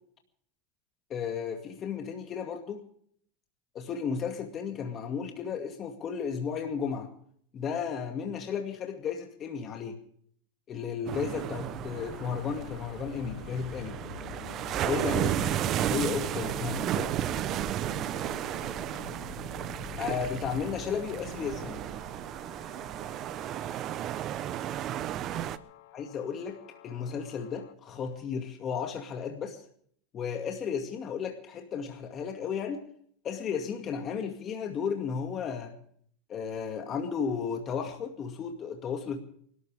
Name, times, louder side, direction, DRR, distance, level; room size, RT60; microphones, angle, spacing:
voice 1, 1.1-2.8 3.7-7.1 7.5-10.0 10.7-14.0 14.8-15.5 15.9-17.1 20.0-21.8 25.9-29.6 30.1-32.8 33.2-35.7 36.3-39.2, left 6 dB, 35° left, 4 dB, 2.2 m, -34 dB
sound 1, 11.1-25.6, right 12 dB, 45° right, 0.8 m, -33 dB
sound 2, 11.9-27.7, left 12 dB, 75° left, 1.0 m, -47 dB
voice 2, 17.9-19.1, right 5 dB, 75° right, 2 dB, 5.6 m, -52 dB
28.0 x 13.0 x 3.5 m, 0.62 s
supercardioid pair, 115°, 0 cm